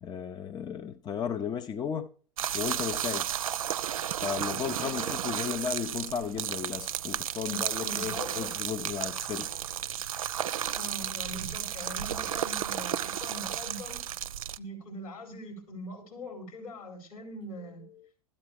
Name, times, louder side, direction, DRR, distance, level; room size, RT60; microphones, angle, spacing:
voice 1, 0.0-2.1 2.5-3.3 4.2-9.5 18.0-18.1, left 7 dB, 20° left, 0.7 m, -34 dB
sound 1, 2.4-14.6, right 10 dB, 65° right, 0.5 m, -33 dB
voice 2, 4.8-5.3 7.5-8.7 10.7-14.0 14.6-17.9, equal, 75° left, 4.8 m, -42 dB
13.5 x 8.6 x 4.6 m
figure-of-eight pair, 85°, 19 cm